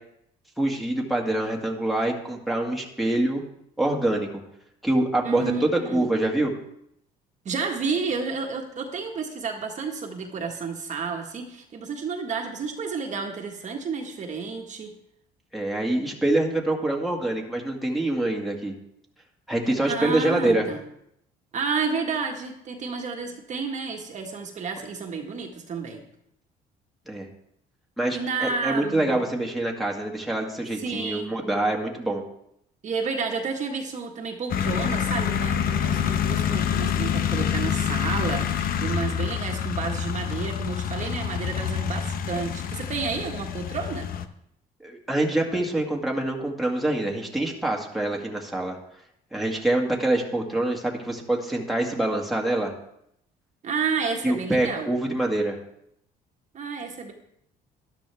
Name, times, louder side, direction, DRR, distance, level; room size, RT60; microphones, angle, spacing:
voice 1, 0.6-3.4 3.8-4.3 4.8-6.5 15.5-18.8 19.5-20.7 27.1-27.3 28.0-32.2 44.8-48.8 49.3-52.7 54.2-55.6, right 1 dB, ahead, -1 dB, 1.9 m, -25 dB
voice 2, 5.2-6.1 7.4-14.9 19.8-20.8 21.5-26.0 28.1-29.2 30.7-31.3 32.8-44.1 53.6-54.9 56.5-57.1, right 5 dB, 45° right, 2 dB, 1.6 m, -31 dB
sound 1, 34.5-44.2, left 8 dB, 60° left, 0.8 m, -27 dB
13.0 x 11.5 x 3.5 m, 0.75 s
cardioid pair, 110°, 17 cm